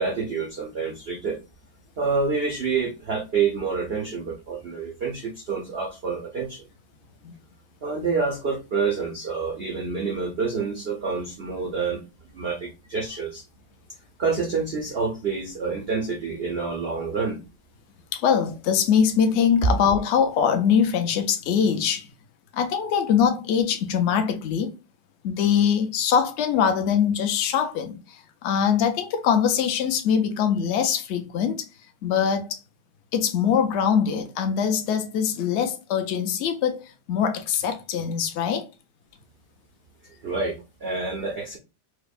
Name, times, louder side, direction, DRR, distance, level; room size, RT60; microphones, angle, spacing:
voice 1, 0.0-1.4 2.0-6.6 7.8-13.4 14.2-17.4 40.2-41.6, right 5 dB, 85° right, 0.5 m, -28 dB
voice 2, 18.1-22.1 22.5-24.7 25.2-31.7 32.0-32.6 33.1-38.6, left 7 dB, 70° left, 0.6 m, -23 dB
4.7 x 2.1 x 2.4 m
omnidirectional pair, 1.9 m